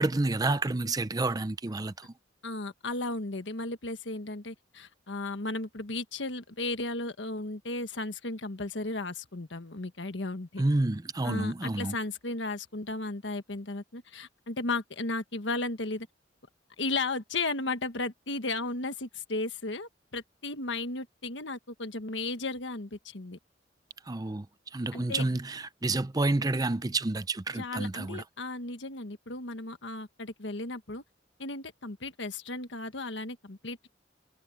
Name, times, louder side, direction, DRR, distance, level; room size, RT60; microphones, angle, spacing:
voice 1, 0.0-2.1 10.6-11.9 24.1-24.5 24.7-28.2, right 2 dB, 20° right, 0.5 m, -29 dB
voice 2, 2.4-10.6 11.2-16.1 16.8-23.4 24.9-25.2 27.5-31.0 31.4-33.9, left 2 dB, 85° left, 1.5 m, -35 dB
head